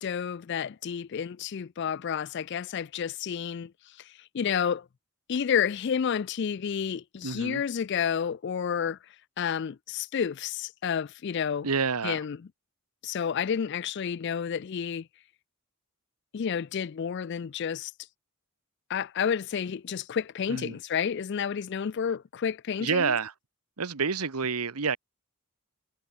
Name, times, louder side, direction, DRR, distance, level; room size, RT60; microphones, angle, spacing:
voice 1, 0.0-3.7 4.3-4.8 5.3-9.0 9.4-11.7 12.0-12.4 13.0-15.0 16.3-17.9 18.9-23.1, left 7 dB, 50° left, 0.4 m, -30 dB
voice 2, 7.2-7.6 11.6-12.2 20.5-20.8 22.8-23.3 23.8-25.0, right 5 dB, 90° right, 1.2 m, -28 dB
head